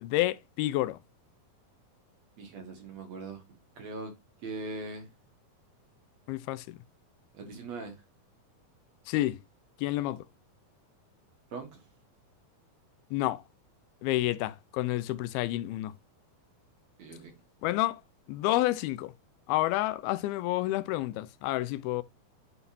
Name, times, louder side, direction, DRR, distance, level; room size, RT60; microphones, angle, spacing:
voice 1, 0.0-1.0 6.3-6.8 9.1-9.4 9.8-10.2 13.1-13.4 14.0-15.9 17.6-18.0 18.3-19.1 19.5-22.0, left 16 dB, 90° left, 2.6 m, -29 dB
voice 2, 2.4-3.4 3.8-4.1 4.4-5.1 7.3-7.9 11.5-11.7 17.0-17.3, right 3 dB, 55° right, 2.5 m, -40 dB
11.0 x 3.9 x 2.6 m
omnidirectional pair, 4.3 m